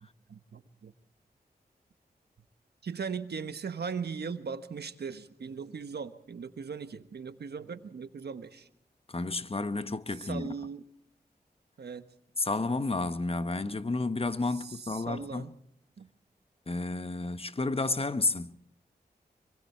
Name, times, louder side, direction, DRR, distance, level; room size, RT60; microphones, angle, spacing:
voice 1, 0.3-0.9 2.8-8.7 10.2-10.8 11.8-12.1 14.6-15.5 16.0-16.1, right 5 dB, 75° right, 1.3 m, -39 dB
voice 2, 9.1-10.5 12.4-15.4 16.7-18.6, left 3 dB, 35° left, 1.1 m, -31 dB
25.5 x 23.5 x 4.5 m
cardioid pair, 45°, 17 cm